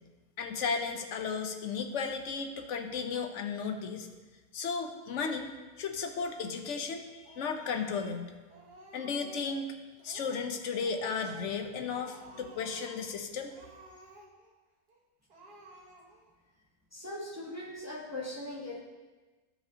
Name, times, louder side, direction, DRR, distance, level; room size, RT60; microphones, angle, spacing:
voice 1, 0.4-4.1 4.5-5.5 5.8-8.3 8.9-9.7 10.0-13.5, left 5 dB, 60° left, 5 dB, 0.9 m, -34 dB
Speech, 7.2-8.2 8.5-9.6 10.0-10.5 10.7-11.6 11.9-13.1 13.4-14.5 14.9-15.0 15.3-16.3, right 2 dB, 80° right, 1.8 m, -54 dB
voice 2, 16.9-18.8, left 1 dB, 15° right, -3 dB, 0.8 m, -40 dB
12.5 x 6.9 x 2.8 m, 1.3 s
omnidirectional pair, 1.7 m